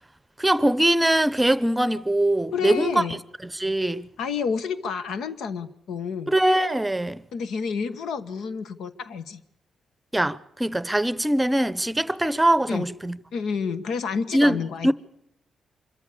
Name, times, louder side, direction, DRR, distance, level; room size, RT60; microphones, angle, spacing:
voice 1, 0.4-3.0 3.4-4.1 6.3-7.3 10.1-13.2 14.3-14.9, right 1 dB, 15° right, 0.8 m, -22 dB
voice 2, 2.5-3.2 4.2-6.3 7.3-9.4 12.7-12.9 13.3-14.9, left 6 dB, 85° left, 1.1 m, -29 dB
25.5 x 13.5 x 8.4 m
cardioid pair, 65°, 0 cm